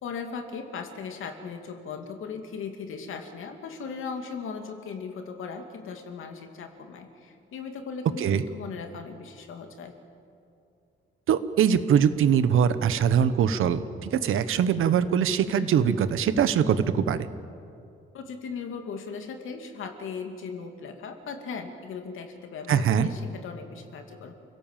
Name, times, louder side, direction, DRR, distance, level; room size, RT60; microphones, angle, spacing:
voice 1, 0.0-9.9 18.1-24.3, left 5 dB, 75° left, 5 dB, 2.6 m, -38 dB
voice 2, 11.3-17.3 22.7-23.1, right 8 dB, 80° right, 12 dB, 1.2 m, -22 dB
29.0 x 17.0 x 7.5 m, 2.6 s
cardioid pair, 140°, 21 cm